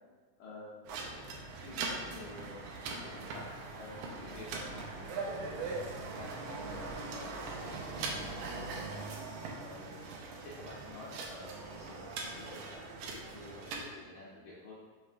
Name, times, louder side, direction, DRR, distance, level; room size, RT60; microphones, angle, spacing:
voice 1, 0.4-0.8 1.0-1.2 1.5-2.6 2.8-4.9 5.4-5.7 6.2-9.0 9.5-10.0 10.4-12.8 13.1-14.8, left 2 dB, 75° left, -8 dB, 1.9 m, -49 dB
sound 1, 0.9-13.8, right 3 dB, 85° right, 1.7 m, -41 dB
5.4 x 3.1 x 2.5 m, 1.5 s
omnidirectional pair, 4.0 m